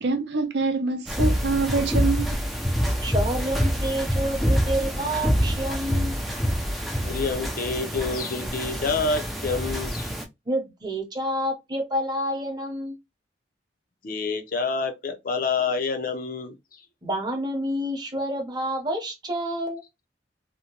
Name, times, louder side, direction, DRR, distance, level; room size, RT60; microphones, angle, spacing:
voice 1, 0.0-2.4, right 3 dB, 65° right, 0.5 m, -25 dB
sound 1, 1.1-10.2, equal, ahead, 0.4 m, -26 dB
voice 2, 3.0-6.1 10.5-13.0 17.0-19.8, equal, 25° right, 0.7 m, -28 dB
voice 3, 7.0-10.1 14.0-16.5, left 4 dB, 50° left, 0.5 m, -27 dB
2.7 x 2.1 x 2.8 m
head